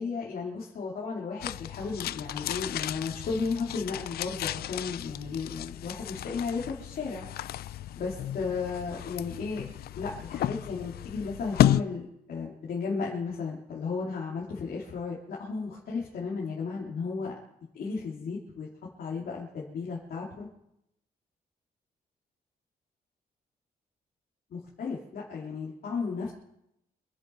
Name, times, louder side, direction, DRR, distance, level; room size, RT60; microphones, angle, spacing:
voice 1, 0.0-7.2 7.9-9.6 10.0-17.3 17.7-18.7 19.0-20.5 24.5-26.3, left 4 dB, 75° left, -3 dB, 2.9 m, -34 dB
sound 1, 1.4-11.8, left 12 dB, 90° left, 0.4 m, -32 dB
25.5 x 11.0 x 4.5 m, 0.83 s
cardioid pair, 120°, 16 cm